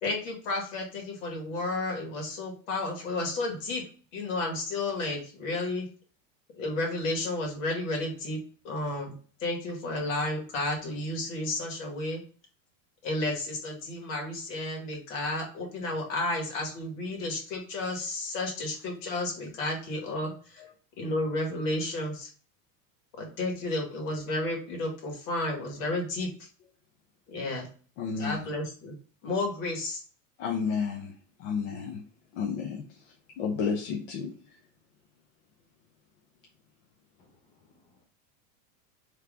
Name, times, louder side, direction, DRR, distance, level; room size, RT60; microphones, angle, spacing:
voice 1, 0.0-3.8 4.1-5.9 6.6-8.4 8.6-9.1 9.4-12.2 13.0-20.6 21.0-22.3 23.2-26.3 27.3-27.7 28.2-28.9 29.2-30.0, left 2 dB, 75° left, 1.9 m, -32 dB
voice 2, 28.0-28.5 30.4-31.1 31.4-32.0 32.3-34.3, left 6 dB, 55° left, 0.8 m, -32 dB
voice 3, 37.2-38.0, left 3 dB, 15° left, 0.7 m, -65 dB
3.7 x 3.3 x 3.5 m
supercardioid pair, 155°, 39 cm